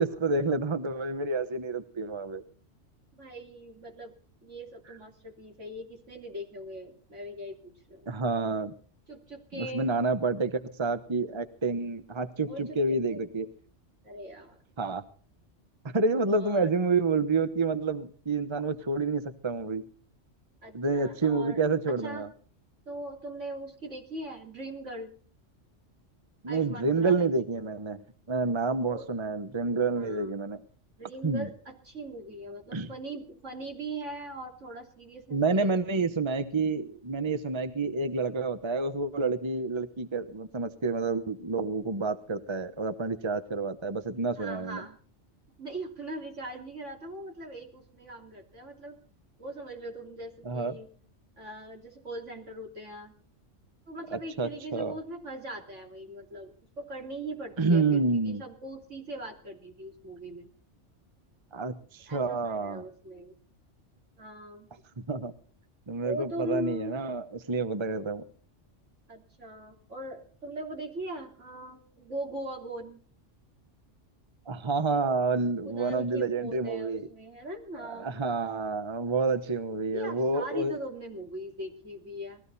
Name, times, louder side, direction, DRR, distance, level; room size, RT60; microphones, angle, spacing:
voice 1, 0.0-2.4 8.1-8.7 9.5-13.5 14.8-15.0 15.9-19.8 20.7-22.3 26.4-28.0 28.3-30.6 31.2-31.5 32.7-32.9 35.3-44.8 50.4-50.7 54.1-55.0 57.6-58.4 61.5-62.8 65.1-65.3 65.9-68.2 74.5-77.1 77.8-80.8, right 3 dB, 25° right, 10 dB, 1.0 m, -29 dB
voice 2, 3.1-4.1 4.4-8.1 9.1-9.9 12.5-13.2 14.0-14.6 16.3-16.7 20.6-21.6 22.0-22.3 22.9-25.1 26.5-27.4 28.8-29.1 30.0-30.3 31.0-36.2 44.4-45.0 45.6-49.0 49.4-50.9 51.4-53.1 53.9-60.5 62.1-63.3 64.2-64.7 66.0-67.0 69.1-73.0 75.6-78.2 79.9-82.4, right 1 dB, 80° right, 1 dB, 3.6 m, -40 dB
20.0 x 15.0 x 4.2 m, 0.42 s
omnidirectional pair, 1.2 m